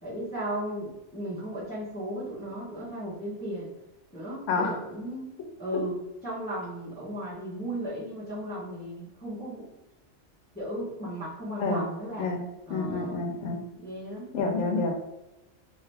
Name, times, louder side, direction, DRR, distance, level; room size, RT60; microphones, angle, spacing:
voice 1, 0.0-3.7 4.1-5.3 5.6-6.0 6.2-9.7 10.5-12.3 12.7-13.2 13.8-14.3, right 1 dB, 10° left, -10 dB, 1.0 m, -35 dB
voice 2, 4.5-4.8 11.6-11.8 12.2-12.4 12.7-13.6 14.3-14.9, left 3 dB, 75° left, 2 dB, 1.0 m, -28 dB
2.8 x 2.7 x 3.4 m, 0.93 s
omnidirectional pair, 1.3 m